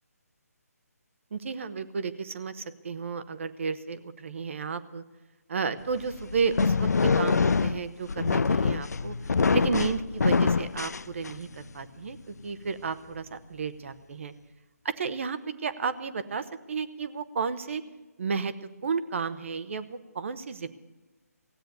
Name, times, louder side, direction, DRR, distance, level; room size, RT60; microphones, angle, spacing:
voice 1, 1.3-5.0 5.5-9.2 9.5-14.3 14.8-17.8 18.2-18.5 18.8-20.7, right 5 dB, 50° right, 12 dB, 1.0 m, -32 dB
sound 1, 6.0-11.6, left 4 dB, 75° left, 0.4 m, -25 dB
16.0 x 9.2 x 7.9 m, 1.2 s
figure-of-eight pair, 150°, 9 cm